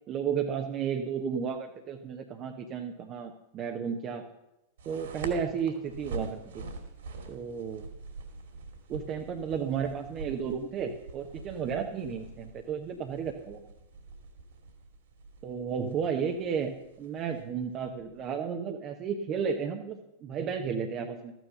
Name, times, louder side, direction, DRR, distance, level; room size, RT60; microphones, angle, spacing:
voice 1, 0.1-4.2 4.8-6.6 7.3-7.9 8.9-13.6 15.4-21.3, right 7 dB, 35° right, 4 dB, 1.0 m, -33 dB
sound 1, 4.8-18.3, right 3 dB, 60° right, 2.6 m, -45 dB
14.0 x 9.3 x 6.7 m, 0.90 s
figure-of-eight pair, 90°, 0 cm